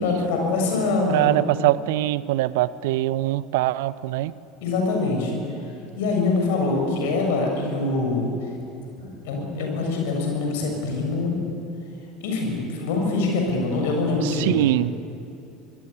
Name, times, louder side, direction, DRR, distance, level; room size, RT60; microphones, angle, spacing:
voice 1, 0.0-1.4 4.6-5.3 6.0-8.3 9.0-11.4 12.2-14.5, left 3 dB, 60° left, 1 dB, 7.2 m, -24 dB
voice 2, 1.1-4.3 14.2-14.9, right 16 dB, 60° right, 19 dB, 0.6 m, -22 dB
25.5 x 21.0 x 8.3 m, 2.7 s
figure-of-eight pair, 70°, 0 cm